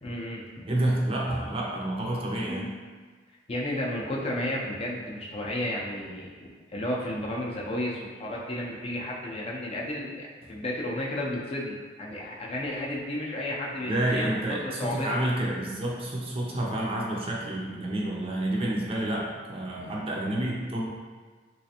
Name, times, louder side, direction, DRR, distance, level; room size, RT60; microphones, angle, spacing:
voice 1, 0.0-0.6 3.5-15.1, left 1 dB, 35° left, -3 dB, 0.5 m, -33 dB
voice 2, 0.7-2.7 13.8-20.9, right 1 dB, 30° right, -3 dB, 0.5 m, -29 dB
3.3 x 3.1 x 2.8 m, 1.5 s
head